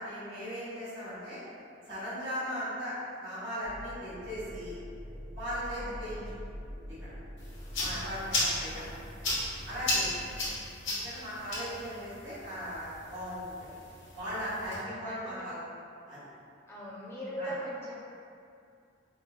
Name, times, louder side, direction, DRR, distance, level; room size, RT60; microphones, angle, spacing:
voice 1, 0.0-1.4 1.9-2.9 3.2-4.7 5.3-6.2 7.0-7.1 7.8-8.9 9.6-10.1 10.9-13.8 14.1-15.6 16.1-16.3 17.4-17.5, equal, 80° right, -12 dB, 1.3 m, -38 dB
sound 1, 3.6-10.5, equal, 40° right, 0.4 m, -45 dB
voice 2, 5.7-6.1 7.7-8.7 10.2-10.6 11.8-12.0 14.5-15.4 16.7-17.9, equal, 15° left, -7 dB, 0.5 m, -42 dB
sound 2, 7.4-14.8, left 1 dB, 80° left, 1.1 m, -35 dB
4.7 x 2.1 x 2.2 m, 2.4 s
head